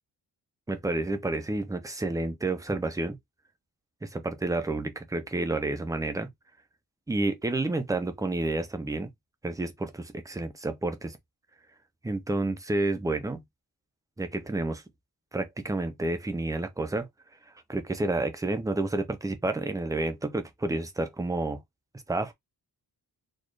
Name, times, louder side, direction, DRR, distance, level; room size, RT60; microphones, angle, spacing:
voice 1, 0.7-3.2 4.0-6.3 7.1-9.1 9.4-11.2 12.0-13.4 14.2-14.8 15.3-17.1 17.7-21.6 22.1-22.3, right 2 dB, 10° right, 0.5 m, -30 dB
4.2 x 2.4 x 3.1 m
wide cardioid pair, 180°, 39 cm